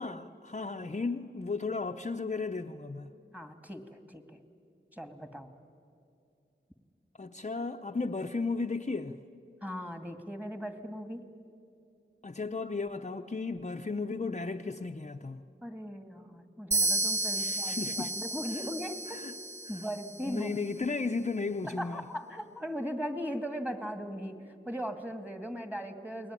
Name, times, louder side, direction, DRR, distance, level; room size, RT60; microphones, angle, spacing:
voice 1, 0.0-3.1 7.2-9.2 12.2-15.4 17.4-18.2 18.5-18.7 19.1-19.3 19.7-19.8 20.3-22.1, left 3 dB, 35° left, 5 dB, 0.7 m, -35 dB
voice 2, 3.3-4.4 4.9-5.5 9.6-11.2 15.6-19.2 19.7-20.6 21.6-26.3, equal, 5° right, 8 dB, 2.2 m, -38 dB
sound 1, 16.7-20.5, right 2 dB, 35° right, 1.8 m, -32 dB
29.0 x 20.5 x 9.9 m, 2.5 s
wide cardioid pair, 70°, 20 cm